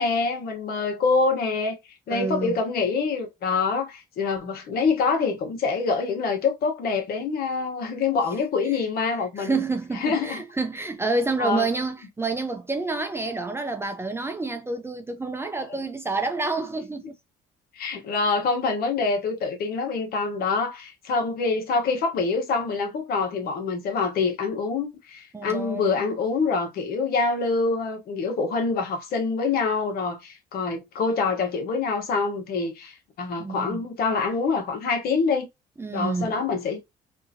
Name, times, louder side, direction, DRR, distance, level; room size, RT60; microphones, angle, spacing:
voice 1, 0.0-1.8 2.1-9.6 10.0-10.4 11.4-11.7 15.6-15.7 17.7-35.5 35.9-36.8, left 4 dB, 65° left, 1.1 m, -25 dB
voice 2, 2.1-2.6 8.7-8.8 9.4-17.0 25.3-25.9 33.4-33.8 35.8-36.4, right 3 dB, 15° right, 0.5 m, -28 dB
2.8 x 2.5 x 2.7 m
cardioid pair, 110°, 17 cm